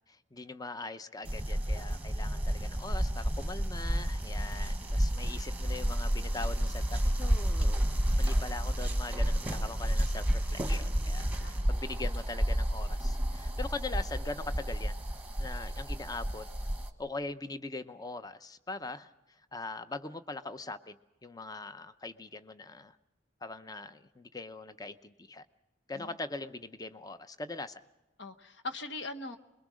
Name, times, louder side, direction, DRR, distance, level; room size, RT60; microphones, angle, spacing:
voice 1, 0.1-7.8 8.2-15.0 15.4-16.4 17.0-19.1 19.5-21.0 21.2-23.0 23.4-25.4 25.9-27.8, left 3 dB, 20° left, 11 dB, 0.7 m, -41 dB
sound 1, 1.3-16.9, equal, 10° right, 1.3 m, -31 dB
voice 2, 4.7-5.1 11.4-11.7 25.9-26.2 28.2-29.4, left 2 dB, 65° left, 6 dB, 1.2 m, -42 dB
23.5 x 22.0 x 6.3 m, 1.0 s
head